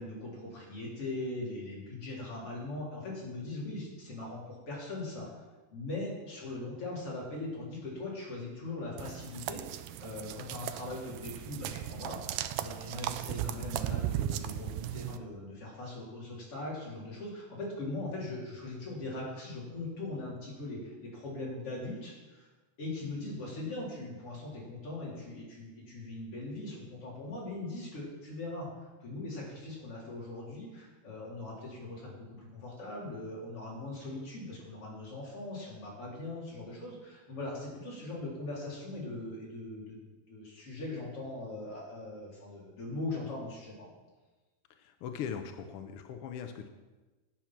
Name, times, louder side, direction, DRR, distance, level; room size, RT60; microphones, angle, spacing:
voice 1, 0.0-5.4 5.7-22.5 22.8-40.0 40.3-43.9, left 2 dB, 50° left, -5 dB, 4.4 m, -40 dB
sound 1, 9.0-15.2, right 12 dB, 80° right, 1.7 m, -37 dB
voice 2, 44.7-46.7, left 7 dB, 70° left, 7 dB, 1.4 m, -40 dB
10.5 x 8.7 x 6.0 m, 1.2 s
omnidirectional pair, 3.3 m